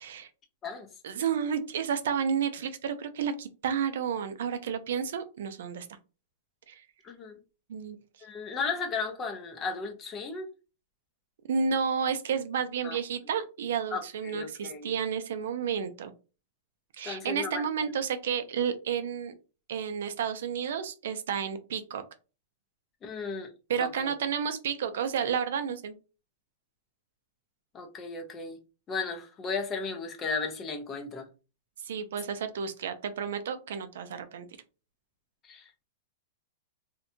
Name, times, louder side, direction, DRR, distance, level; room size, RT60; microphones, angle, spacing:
voice 1, 1.0-5.9 6.7-6.8 7.7-8.0 11.5-16.1 17.0-19.3 19.7-22.0 23.7-25.9 31.8-34.5, right 7 dB, 70° right, 0.4 m, -31 dB
voice 2, 7.0-7.4 8.2-10.5 12.8-13.0 13.9-14.9 17.0-17.9 23.0-23.5 23.8-24.1 27.7-28.6 28.9-31.3 35.4-35.8, left 4 dB, 20° left, 0.4 m, -35 dB
2.7 x 2.1 x 2.6 m
supercardioid pair, 160°, 0 cm